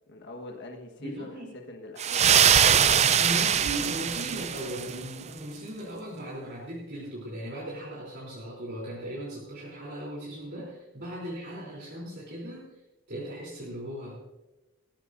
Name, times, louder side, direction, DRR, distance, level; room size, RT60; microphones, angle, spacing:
voice 1, 0.1-2.6 3.1-3.2, left 1 dB, 50° left, 2 dB, 1.5 m, -43 dB
voice 2, 1.0-1.5 2.7-12.8 13.1-14.2, right 1 dB, 50° right, -6 dB, 3.5 m, -38 dB
sound 1, 2.0-5.0, right 8 dB, 30° right, 0.4 m, -22 dB
18.5 x 15.5 x 2.6 m, 1.0 s
head